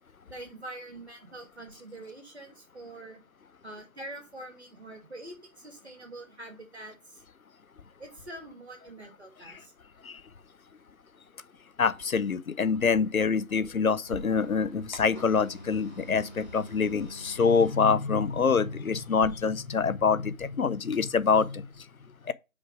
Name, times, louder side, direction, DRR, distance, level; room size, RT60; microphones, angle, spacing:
voice 1, 0.3-3.2 3.6-7.2 8.0-9.7, right 1 dB, 50° right, 2.7 m, -44 dB
voice 2, 11.8-21.7 22.3-22.4, left 5 dB, 85° left, 0.7 m, -25 dB
sound 1, 14.0-19.3, equal, 35° left, 1.0 m, -45 dB
5.2 x 5.0 x 4.8 m
figure-of-eight pair, 170°, 41 cm